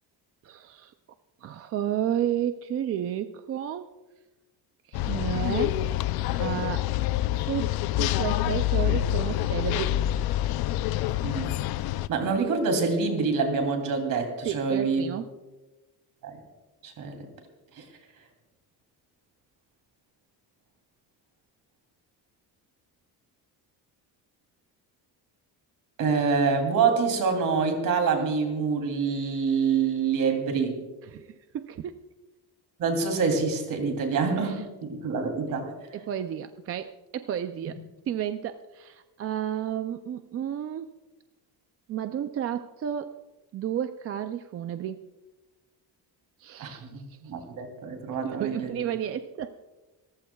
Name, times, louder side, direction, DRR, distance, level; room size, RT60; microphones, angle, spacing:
voice 1, 0.4-0.9 1.4-3.9 4.9-5.8 6.4-6.9 7.4-10.3 14.4-15.3 31.0-32.0 34.4-34.6 35.5-35.6 35.9-37.8 38.1-40.9 41.9-43.1 43.5-45.0 46.4-47.2 48.2-49.5, right 10 dB, 35° right, 9 dB, 0.4 m, -32 dB
sound 1, 4.9-12.1, left 14 dB, 65° left, 0.5 m, -27 dB
voice 2, 11.2-11.5 12.1-15.0 16.2-16.4 16.8-17.3 17.8-17.9 26.0-30.8 32.8-35.7 46.6-48.8, right 5 dB, 55° right, 4 dB, 2.9 m, -26 dB
28.5 x 14.5 x 2.3 m, 1.2 s
cardioid pair, 175°, 40 cm